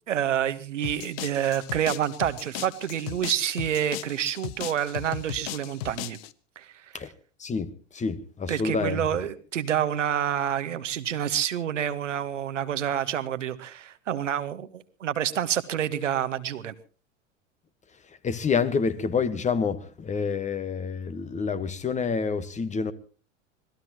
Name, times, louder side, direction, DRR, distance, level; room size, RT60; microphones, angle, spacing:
voice 1, 0.0-6.2 6.6-6.8 8.5-16.7, right 10 dB, 75° right, 1.4 m, -28 dB
sound 1, 0.8-6.3, left 14 dB, 50° left, 1.0 m, -37 dB
voice 2, 7.4-9.0 18.2-22.9, left 5 dB, 20° left, 1.3 m, -28 dB
26.0 x 18.5 x 3.0 m
figure-of-eight pair, 85°, 38 cm